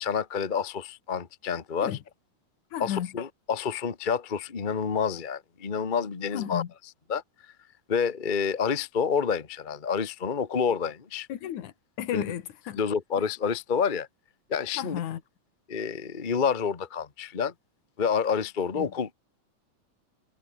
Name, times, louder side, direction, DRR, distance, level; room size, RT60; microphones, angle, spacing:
voice 1, 0.0-1.9 2.8-6.6 7.1-7.2 7.9-11.3 12.1-12.2 12.7-14.1 14.5-15.0 15.7-17.5 18.0-19.1, left 6 dB, 40° left, 0.7 m, -28 dB
voice 2, 2.7-3.1 6.3-6.7 11.3-12.8 14.8-15.2 18.7-18.9, left 11 dB, 80° left, 3.0 m, -33 dB
omnidirectional pair, 3.4 m